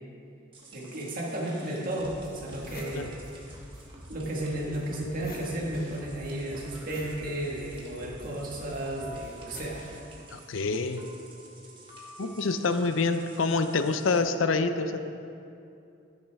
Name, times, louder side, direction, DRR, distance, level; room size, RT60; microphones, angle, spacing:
sound 1, 0.5-14.2, right 2 dB, 25° right, 1.4 m, -50 dB
voice 1, 0.7-3.1 4.1-9.8, right 1 dB, 45° right, -3 dB, 1.8 m, -33 dB
sound 2, 1.4-1.5 2.0-2.1 2.3-3.9 4.1-10.7, left 2 dB, 45° left, 1.2 m, -50 dB
sound 3, 2.0-10.0, equal, 85° right, 2.0 m, -48 dB
voice 2, 10.3-11.1 12.2-15.1, left 4 dB, 80° left, 9 dB, 0.6 m, -27 dB
12.0 x 9.8 x 3.6 m, 2.6 s
head